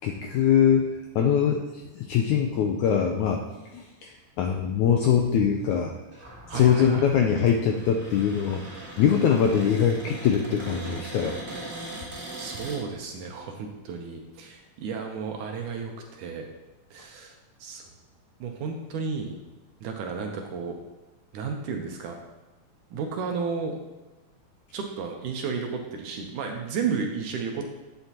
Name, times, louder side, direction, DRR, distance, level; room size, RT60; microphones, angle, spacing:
voice 1, 0.0-1.6 1.9-3.4 3.7-5.9 6.5-8.6 9.0-11.4, left 8 dB, 85° left, 3 dB, 1.7 m, -22 dB
Cupboard open or close, 6.1-12.8, right 1 dB, 20° right, 2.6 m, -40 dB
voice 2, 6.5-7.1 12.4-16.5 16.9-17.3 17.6-17.9 18.4-19.3 19.8-20.8 21.3-22.2 22.9-23.7 24.7-27.6, right 5 dB, 75° right, 2 dB, 2.1 m, -33 dB
10.0 x 8.0 x 2.9 m, 1.2 s
omnidirectional pair, 4.1 m